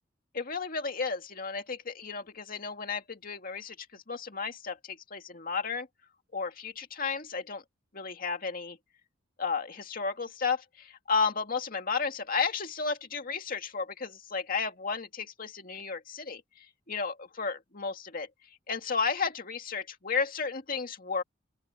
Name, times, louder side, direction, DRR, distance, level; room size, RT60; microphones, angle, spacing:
voice 1, 0.3-5.9 6.3-7.6 7.9-8.8 9.4-18.3 18.7-21.2, left 5 dB, 50° left, 2.2 m, -33 dB
open air
head